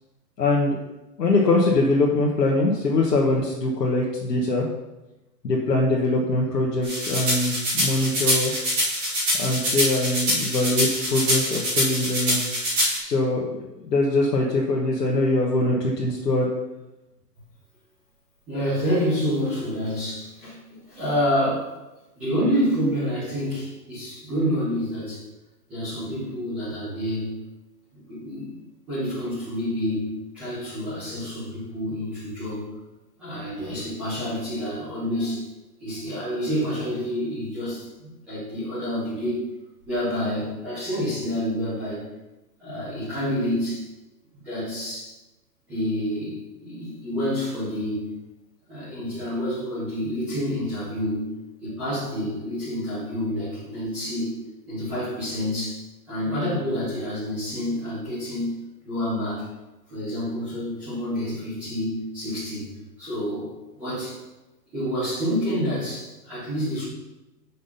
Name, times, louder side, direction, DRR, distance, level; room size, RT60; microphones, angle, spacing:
voice 1, 0.4-0.8 1.2-4.7 5.4-8.5 9.4-12.4 13.0-16.5, left 2 dB, 75° left, -3 dB, 1.5 m, -23 dB
sound 1, 6.8-13.0, equal, 20° right, 2.7 m, -24 dB
voice 2, 18.5-20.6 20.9-21.7 22.1-25.2 25.7-27.4 27.9-28.6 28.9-32.7 33.2-35.5 35.8-39.4 39.9-42.1 42.6-43.9 44.4-45.1 45.7-48.1 48.7-51.3 51.6-54.4 54.7-55.8 56.1-59.5 59.9-62.7 63.0-64.2 64.7-66.8, equal, 5° right, -14 dB, 0.6 m, -28 dB
6.2 x 5.5 x 5.7 m, 1.0 s
hypercardioid pair, 160°, 49 cm